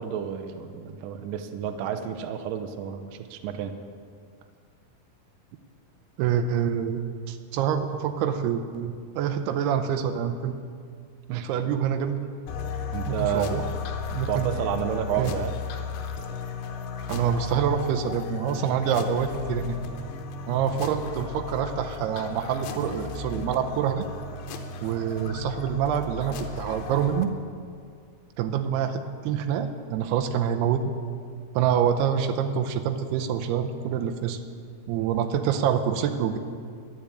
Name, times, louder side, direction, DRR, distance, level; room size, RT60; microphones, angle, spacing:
voice 1, 0.0-3.7 11.3-11.5 12.9-13.6 14.3-15.5, right 9 dB, 75° right, 7 dB, 2.2 m, -30 dB
voice 2, 6.2-7.0 7.3-10.6 11.4-12.2 13.1-13.7 14.1-14.5 15.2-15.3 17.1-19.8 20.5-24.1 24.8-27.3 28.4-30.8 31.5-34.4 34.9-36.4, right 8 dB, 90° right, 6 dB, 2.8 m, -26 dB
sound 1, 12.5-27.2, left 5 dB, 75° left, 2.6 m, -35 dB
10.5 x 10.5 x 8.6 m, 2.2 s
omnidirectional pair, 4.6 m